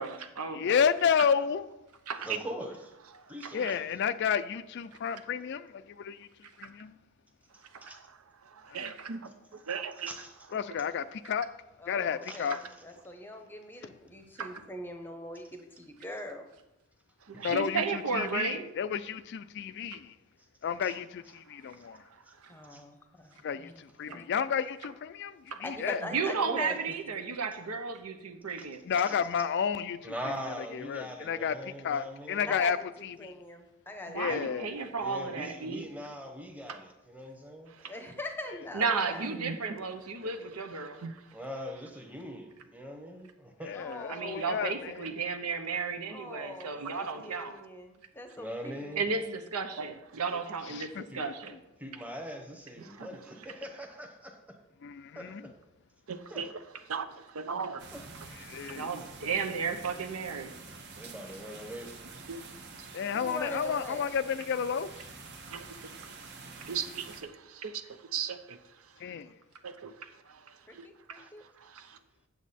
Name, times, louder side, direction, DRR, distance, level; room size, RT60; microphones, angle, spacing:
voice 1, 0.0-0.8 2.1-2.3 3.6-3.7 7.7-7.9 8.8-9.1 12.5-12.6 14.4-14.5 17.3-18.6 19.9-20.0 22.4-22.5 24.1-24.2 25.5-25.6 26.1-28.8 34.1-35.9 36.7-36.8 38.7-41.0 44.1-47.5 49.0-51.6 58.7-60.5 66.6-66.7, right 5 dB, 90° right, 0.9 m, -33 dB
voice 2, 0.5-1.7 3.5-6.3 6.6-7.0 8.7-9.0 10.5-11.5 11.9-12.6 17.4-20.1 20.6-22.0 23.4-26.0 28.9-30.0 30.7-31.6 31.8-32.8 33.0-33.3 34.2-34.7 43.6-45.0 50.7-51.3 54.8-55.4 58.5-58.9 62.9-64.9 69.0-69.3, left 7 dB, 50° left, 0.3 m, -31 dB
voice 3, 2.2-2.9 3.3-3.8 7.8-8.0 9.2-9.3 9.7-10.5 12.2-12.6 17.3-17.6 20.8-20.9 21.7-21.9 22.7-22.8 28.9-29.2 30.0-32.6 34.2-34.5 34.9-37.8 40.2-40.3 41.3-43.8 47.1-47.3 48.4-49.0 50.7-50.8 51.1-51.2 51.8-54.6 55.1-55.5 56.3-56.5 57.9-58.0 58.4-58.5 60.9-62.0 71.1-71.3, equal, 5° right, 1.0 m, -42 dB
voice 4, 8.6-9.2 9.5-10.1 39.2-39.6 41.0-41.1 52.9-53.1 56.1-56.5 56.9-57.1 57.3-57.8 62.3-62.4 65.5-65.9 66.7-67.7 68.1-68.6 69.6-69.9 70.3-70.4 70.7-70.9 71.6-72.0, right 6 dB, 70° right, 0.6 m, -37 dB
voice 5, 11.8-16.5 22.5-24.2 25.6-26.9 32.5-33.6 33.9-34.7 37.9-39.4 43.7-45.0 46.1-49.0 63.1-64.1 70.7-71.4, left 1 dB, 10° left, 0.7 m, -42 dB
sound 1, 57.8-67.2, right 4 dB, 50° right, 1.0 m, -47 dB
8.1 x 7.4 x 4.2 m
head